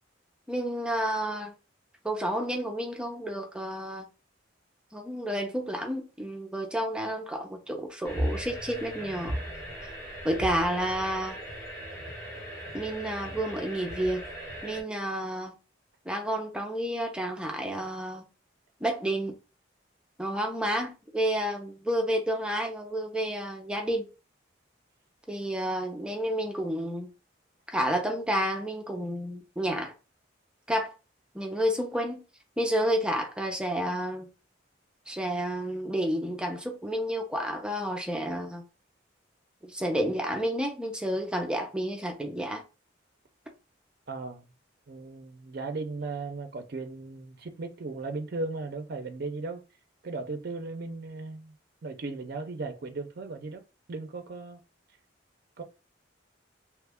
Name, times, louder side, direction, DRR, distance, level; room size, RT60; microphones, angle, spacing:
voice 1, 0.5-1.5 2.0-4.1 4.9-9.4 10.2-11.4 12.7-14.2 14.6-15.5 16.1-18.3 18.8-19.3 20.2-24.1 25.3-27.1 27.7-29.9 30.7-30.9 31.3-32.2 32.6-34.3 35.1-38.7 39.6-42.6, equal, 5° right, 0.5 m, -30 dB
sound 1, 8.0-14.8, equal, 15° left, 1.1 m, -37 dB
voice 2, 44.1-44.4 44.9-49.6 50.0-51.5 51.8-53.6 53.9-54.6 55.6-55.7, right 3 dB, 55° right, 0.5 m, -36 dB
2.9 x 2.3 x 3.4 m
head